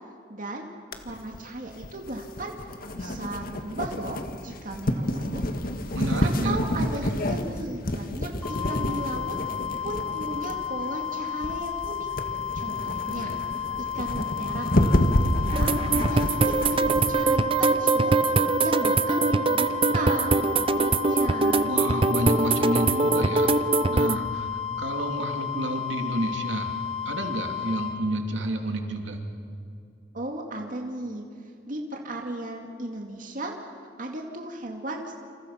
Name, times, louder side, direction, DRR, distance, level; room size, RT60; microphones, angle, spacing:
voice 1, 0.3-0.7 1.0-2.5 2.9-5.4 6.2-8.3 8.6-9.4 9.8-12.1 12.5-13.3 13.9-16.8 17.1-21.8 30.1-31.2 31.7-33.5 34.0-35.1, right 1 dB, 45° right, 1 dB, 2.3 m, -35 dB
sound 1, 0.9-17.2, left 1 dB, 55° left, 1.8 m, -29 dB
voice 2, 5.9-7.1 21.6-23.5 23.9-26.7 27.0-29.2, right 1 dB, 80° right, 3 dB, 2.9 m, -30 dB
sound 2, 8.4-27.9, left 9 dB, 5° left, 7.1 m, -32 dB
sound 3, 15.5-24.2, right 3 dB, 30° right, 0.6 m, -23 dB
28.5 x 27.5 x 5.8 m, 2.4 s
head